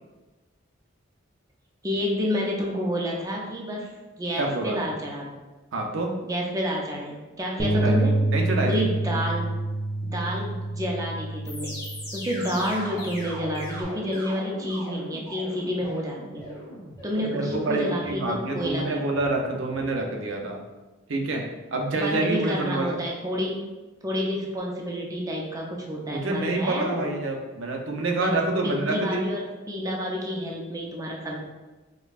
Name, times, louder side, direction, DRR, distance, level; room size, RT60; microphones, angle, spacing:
voice 1, 1.8-3.9 4.2-5.4 6.2-8.2 8.6-9.5 10.0-11.8 12.1-16.6 17.0-19.1 22.0-23.6 24.0-27.1 28.2-31.4, equal, 15° right, -2 dB, 0.5 m, -29 dB
voice 2, 4.4-4.8 5.7-6.1 7.6-8.0 8.3-8.7 17.2-20.6 21.1-21.4 21.7-23.0 26.1-29.3, right 2 dB, 75° right, 1 dB, 0.6 m, -27 dB
Bass guitar, 7.6-13.8, right 1 dB, 35° left, 0.6 m, -28 dB
sound 1, 11.4-20.3, equal, 15° left, 1.2 m, -40 dB
5.1 x 2.2 x 2.4 m, 1.2 s
head